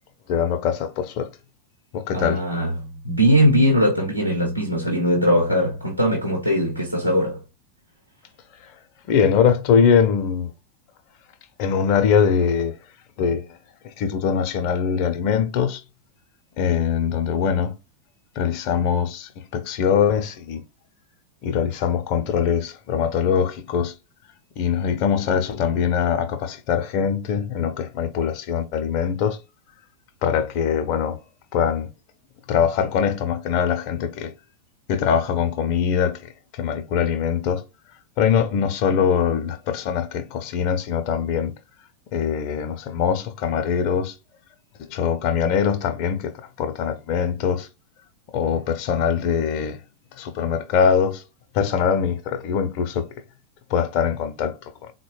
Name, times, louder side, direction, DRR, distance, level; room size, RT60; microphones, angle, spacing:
voice 1, 0.3-1.3 1.9-2.4 9.1-10.5 11.6-12.8 13.2-13.6 13.8-15.8 16.6-17.7 18.4-20.6 21.4-23.9 24.6-29.4 30.2-31.2 31.5-31.9 32.5-34.3 34.9-37.6 38.2-41.5 42.1-44.1 44.8-47.7 48.3-49.8 50.2-51.2 51.5-53.1 53.7-54.9, left 7 dB, 45° left, 0.6 m, -22 dB
voice 2, 2.1-7.4, equal, 90° right, 0.9 m, -20 dB
3.9 x 2.1 x 3.1 m
figure-of-eight pair, 90°, 0 cm